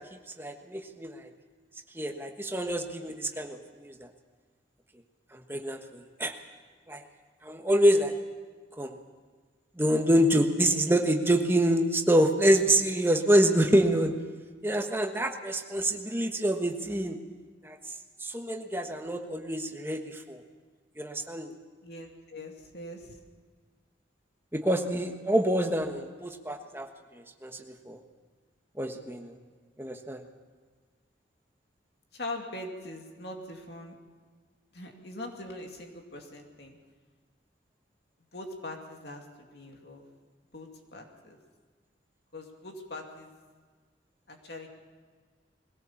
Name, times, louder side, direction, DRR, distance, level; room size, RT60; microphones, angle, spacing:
voice 1, 0.4-1.3 1.9-4.1 5.3-6.3 6.9-7.0 7.4-8.2 8.8-9.0 9.8-14.1 14.6-17.2 17.6-17.9 18.2-20.4 21.0-21.5 24.5-26.9 27.1-28.0 28.8-29.3 29.8-30.2, right 1 dB, 10° right, 4 dB, 1.4 m, -26 dB
voice 2, 21.8-23.2 32.1-34.0 34.7-36.8 38.3-40.0 40.5-41.4 42.3-43.3 44.3-44.7, left 1 dB, 65° left, 2 dB, 2.5 m, -42 dB
21.5 x 17.0 x 7.3 m, 1.5 s
head